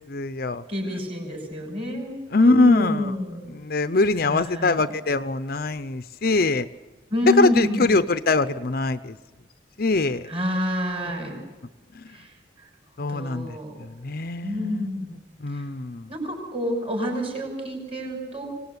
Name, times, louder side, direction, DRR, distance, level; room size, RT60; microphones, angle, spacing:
voice 1, 0.0-0.6 2.3-3.1 3.5-6.7 7.4-9.2 9.8-10.3 11.9-12.1 13.0-14.9 15.4-16.1, left 3 dB, 50° left, 12 dB, 0.7 m, -23 dB
voice 2, 0.7-3.5 4.2-4.8 7.1-8.0 10.3-11.4 12.1-12.3 13.0-13.8 14.4-15.2 15.5-15.6 16.1-18.5, left 1 dB, 30° right, 2 dB, 6.2 m, -28 dB
25.0 x 19.0 x 8.2 m, 1.2 s
head